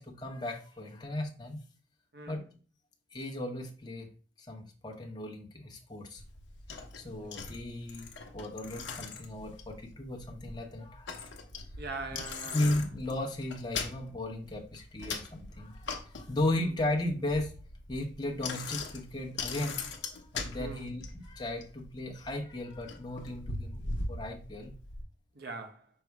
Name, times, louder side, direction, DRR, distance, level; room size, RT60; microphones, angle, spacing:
voice 1, 0.0-1.6 2.3-2.4 3.1-4.1 4.4-6.2 7.0-11.2 12.1-12.2 12.5-17.5 17.9-19.9 20.3-24.7, left 1 dB, 25° left, 0.8 m, -35 dB
voice 2, 2.1-2.4 7.2-7.4 11.8-12.6 16.6-16.8 20.6-20.9 25.3-25.9, right 3 dB, 55° right, 0.7 m, -42 dB
Bicycle, 6.2-25.0, left 4 dB, 70° left, 0.7 m, -41 dB
5.4 x 2.0 x 4.6 m
head